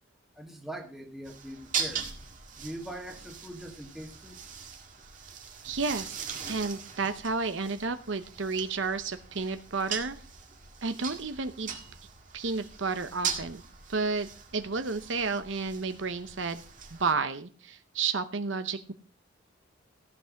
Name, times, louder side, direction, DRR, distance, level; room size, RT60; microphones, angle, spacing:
voice 1, 0.4-2.1 2.6-4.4, right 1 dB, ahead, 1.8 m, -42 dB
sound 1, 1.2-17.1, right 6 dB, 40° right, 1.9 m, -40 dB
voice 2, 5.6-10.2 10.8-11.7 12.3-13.6 13.9-16.6 17.0-18.9, right 4 dB, 60° right, 0.8 m, -31 dB
15.0 x 5.8 x 6.4 m
head